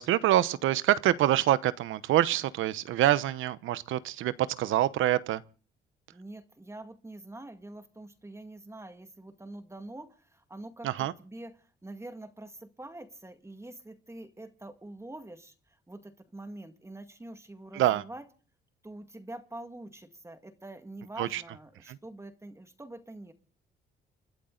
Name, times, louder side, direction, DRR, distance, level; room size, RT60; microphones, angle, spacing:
voice 1, 0.0-5.4 10.8-11.1 17.7-18.0 21.2-21.4 21.9-22.0, right 13 dB, 85° right, 0.9 m, -26 dB
voice 2, 6.1-18.3 18.8-23.3, right 2 dB, 15° right, 2.1 m, -45 dB
29.5 x 12.0 x 3.9 m
cardioid pair, 90°, 20 cm